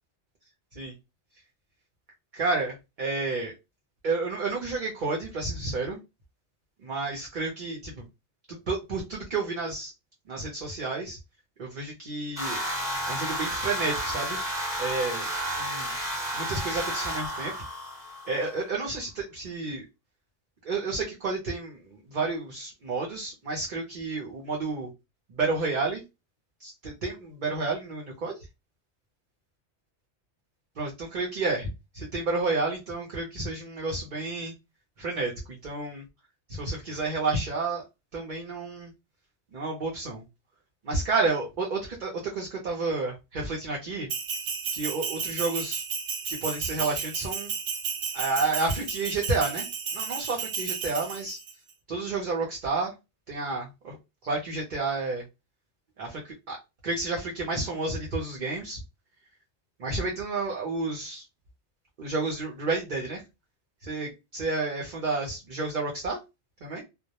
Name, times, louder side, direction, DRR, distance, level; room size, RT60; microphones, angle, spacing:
voice 1, 2.3-3.5 4.0-6.0 6.8-8.0 8.5-9.9 10.3-11.2 11.6-12.6 13.1-14.4 14.8-15.3 15.6-15.9 16.3-17.5 18.3-19.9 20.6-24.9 25.3-26.0 26.6-28.5 30.8-34.5 35.0-36.0 36.5-37.8 38.1-38.9 39.5-40.2 40.8-44.1 44.7-45.8 46.3-47.5 48.1-51.4 51.9-52.9 53.3-54.0 54.2-55.2 56.0-56.6 56.8-58.8 59.8-61.2 62.0-63.2 63.8-66.2 66.6-66.8, right 3 dB, 50° right, -1 dB, 0.7 m, -30 dB
sound 1, 12.4-18.5, equal, 5° right, 0.9 m, -32 dB
Bell, 44.1-51.5, right 6 dB, 80° right, 0.9 m, -33 dB
2.2 x 2.0 x 2.7 m, 0.24 s
omnidirectional pair, 1.2 m